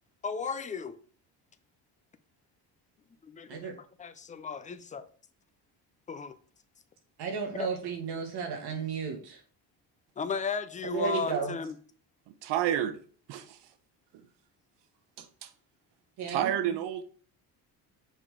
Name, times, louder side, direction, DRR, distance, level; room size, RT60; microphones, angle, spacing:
voice 1, 0.2-1.0 3.2-5.0 6.1-6.4 7.5-7.7 10.2-11.7, left 5 dB, 20° left, 0.3 m, -35 dB
voice 2, 7.2-9.4 10.8-11.6 16.2-16.6, right 5 dB, 70° right, 1.9 m, -33 dB
voice 3, 12.4-13.0 13.3-13.7 15.2-15.5 16.3-17.0, right 11 dB, 90° right, 0.9 m, -30 dB
6.7 x 5.0 x 3.7 m
cardioid pair, 165°, 41 cm